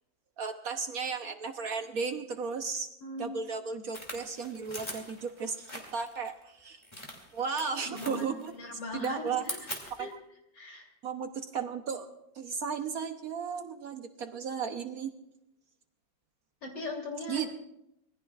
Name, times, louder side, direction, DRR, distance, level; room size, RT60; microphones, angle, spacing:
voice 1, 0.4-2.9 3.2-6.8 7.3-8.5 8.9-9.4 10.0-10.1 11.0-12.1 12.3-15.1 17.3-17.5, right 5 dB, 60° right, 7 dB, 1.2 m, -35 dB
voice 2, 3.0-3.3 7.8-8.3 8.5-9.7 10.0-10.2 10.5-10.9 16.6-17.5, left 2 dB, 70° left, 1 dB, 3.9 m, -39 dB
sound 1, 3.9-6.3 6.8-7.6 7.9-8.6 8.9-10.1, left 1 dB, 15° left, 2.6 m, -42 dB
25.5 x 20.0 x 2.5 m, 0.81 s
omnidirectional pair, 2.0 m